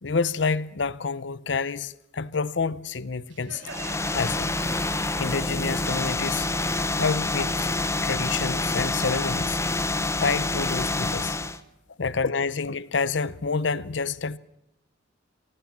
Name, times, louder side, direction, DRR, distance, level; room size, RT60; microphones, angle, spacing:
voice 1, 0.0-3.6 4.1-4.5 5.2-6.5 7.0-7.7 8.0-9.6 10.2-11.4 12.0-14.4, left 4 dB, 65° left, 0.8 m, -28 dB
Crowd, 3.3-8.7, right 4 dB, 75° right, 2.5 m, -46 dB
sound 1, 3.6-11.6, left 2 dB, 15° left, 0.9 m, -27 dB
24.0 x 18.0 x 7.3 m
head